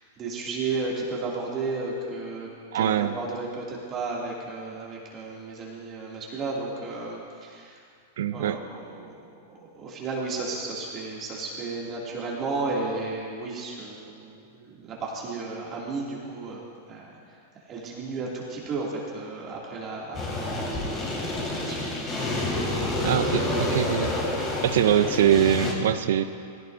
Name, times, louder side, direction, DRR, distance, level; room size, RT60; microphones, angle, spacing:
voice 1, 0.0-2.5 2.7-7.8 8.3-9.1 9.7-21.9, right 3 dB, 30° right, -4 dB, 2.4 m, -33 dB
voice 2, 2.7-3.1 8.2-8.6 23.0-24.1 24.6-26.2, right 10 dB, 75° right, 11 dB, 0.5 m, -23 dB
sound 1, 20.1-25.7, left 2 dB, 25° left, 2.9 m, -28 dB
17.5 x 16.5 x 2.6 m, 2.2 s
hypercardioid pair, 135°, 0 cm